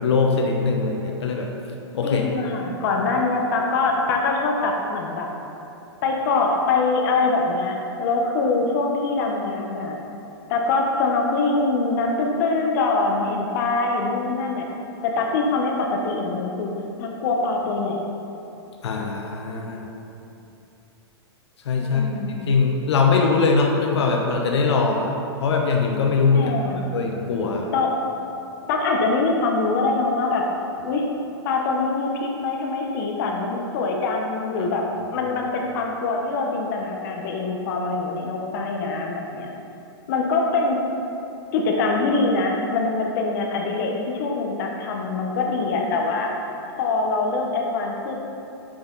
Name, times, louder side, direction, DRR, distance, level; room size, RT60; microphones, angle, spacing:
voice 1, 0.0-1.5 1.9-2.2 18.8-19.9 21.6-25.1 25.4-27.7 35.1-35.3, left 4 dB, 80° left, 1 dB, 0.9 m, -22 dB
voice 2, 2.0-5.3 6.0-10.0 10.5-14.7 15.0-16.7 17.0-18.0 21.8-22.4 26.3-26.9 27.7-27.9 28.7-30.5 30.8-31.1 31.4-34.8 35.1-39.5 40.1-40.8 41.5-46.3 46.8-48.1, left 3 dB, 50° left, 0 dB, 0.9 m, -23 dB
6.8 x 5.6 x 3.9 m, 2.9 s
hypercardioid pair, 145°, 14 cm